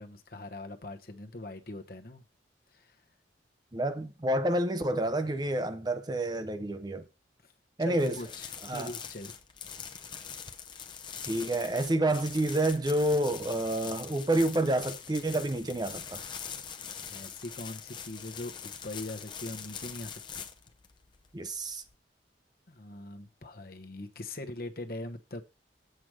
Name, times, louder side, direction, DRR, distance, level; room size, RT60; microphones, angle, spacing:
voice 1, 0.0-2.2 2.7-3.0 7.4-7.5 7.8-9.4 16.9-20.5 22.7-25.4, left 2 dB, 50° left, 1.0 m, -42 dB
voice 2, 3.7-7.0 7.8-8.2 8.7-8.9 11.2-16.2 21.3-21.8, right 1 dB, 20° right, 0.5 m, -29 dB
sound 1, 8.0-21.9, left 7 dB, 25° left, 0.7 m, -43 dB
7.9 x 5.0 x 6.1 m
head